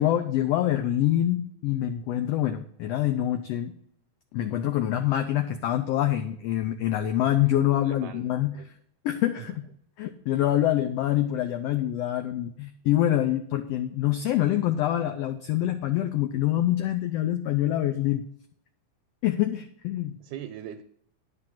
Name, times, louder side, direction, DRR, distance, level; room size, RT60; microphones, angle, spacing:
voice 1, 0.0-3.7 4.3-8.6 9.0-9.7 10.0-18.2 19.2-20.2, left 12 dB, 85° left, 1.4 m, -25 dB
voice 2, 7.8-8.3 8.5-8.7 9.4-9.5 20.2-20.8, right 11 dB, 80° right, 1.9 m, -40 dB
10.0 x 4.5 x 7.2 m
omnidirectional pair, 3.5 m